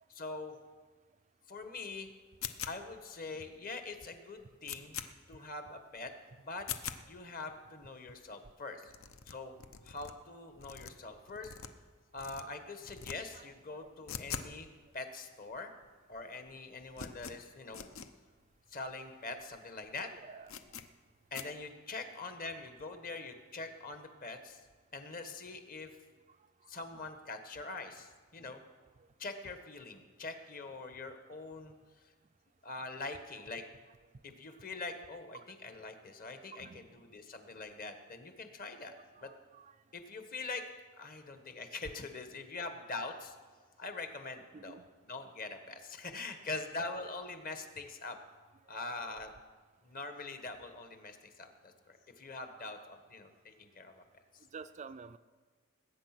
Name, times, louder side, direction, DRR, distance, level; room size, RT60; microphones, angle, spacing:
voice 1, 0.1-0.6 1.5-2.1 2.7-5.0 5.3-6.1 6.4-6.7 7.1-8.9 9.3-9.5 9.8-11.5 12.1-14.7 14.9-15.7 16.1-17.8 18.7-20.1 21.3-24.6 24.9-25.9 26.7-28.6 29.2-31.7 32.0-32.1 32.6-33.6 34.2-38.9 39.2-39.3 39.9-40.6 41.0-43.4 43.8-48.2 48.7-49.3 49.8-54.0 54.3-54.4, left 3 dB, 40° left, 7 dB, 1.3 m, -43 dB
sound 1, 2.4-3.0 3.5-3.6 4.0-4.1 4.4-5.1 5.5-5.6 6.0-6.1 6.5-7.0 7.5-7.6 7.8-7.9 8.1-8.2 8.5-8.6 8.9-10.1 10.5-11.9 12.2-12.4 12.8-13.2 13.4-14.6 14.8-14.9 15.6-15.7 15.8-16.2 16.5-18.1 18.5-18.6 18.8-18.9 19.4-19.6 19.8-19.9 20.5-20.9 21.3-21.5, left 8 dB, 65° left, 0.8 m, -43 dB
voice 2, 36.5-36.9 38.9-39.7 44.5-44.8 48.7-48.9 54.5-55.2, right 5 dB, 35° right, 11 dB, 0.4 m, -50 dB
20.0 x 8.8 x 6.0 m, 1.4 s
head